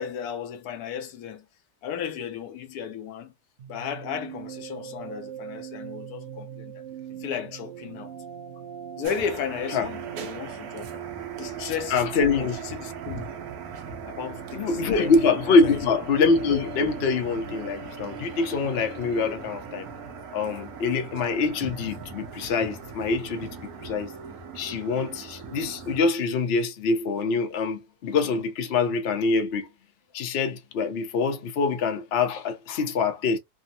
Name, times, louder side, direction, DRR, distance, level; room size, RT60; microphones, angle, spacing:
voice 1, 0.0-1.5 1.8-3.3 3.7-6.8 7.2-8.1 9.0-11.0 11.4-13.2 14.1-15.1 15.4-15.8 19.2-19.4, left 8 dB, 75° left, 1.1 m, -34 dB
sound 1, 3.6-23.1, right 7 dB, 55° right, 0.9 m, -41 dB
sound 2, 9.0-26.0, right 5 dB, 70° right, 1.2 m, -40 dB
voice 2, 11.9-12.6 14.6-19.9 20.3-24.1 24.5-29.7 30.1-33.4, left 4 dB, 60° left, 0.6 m, -25 dB
3.5 x 2.0 x 2.5 m
omnidirectional pair, 1.7 m